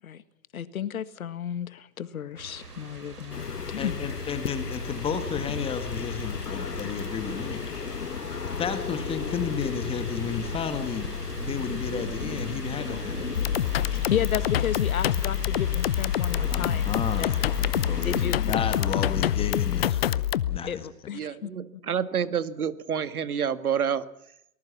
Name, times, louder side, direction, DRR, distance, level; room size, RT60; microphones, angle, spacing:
voice 1, 0.5-4.0 13.9-17.3 18.0-18.4 20.6-21.5, left 9 dB, 65° left, 14 dB, 1.8 m, -33 dB
sound 1, 2.4-18.3, right 4 dB, 90° right, 6.2 m, -41 dB
sound 2, 3.3-19.9, left 6 dB, 85° left, 1.4 m, -34 dB
voice 2, 3.8-7.6 8.5-11.1 11.4-13.2 16.4-17.4 17.9-20.2 20.5-20.9, left 6 dB, 10° left, 9 dB, 1.7 m, -32 dB
sound 3, 13.4-20.6, left 12 dB, 40° left, 0.8 m, -26 dB
voice 3, 21.1-24.0, right 7 dB, 70° right, 13 dB, 1.9 m, -28 dB
23.5 x 20.0 x 7.2 m, 0.75 s
hypercardioid pair, 135°, 45 cm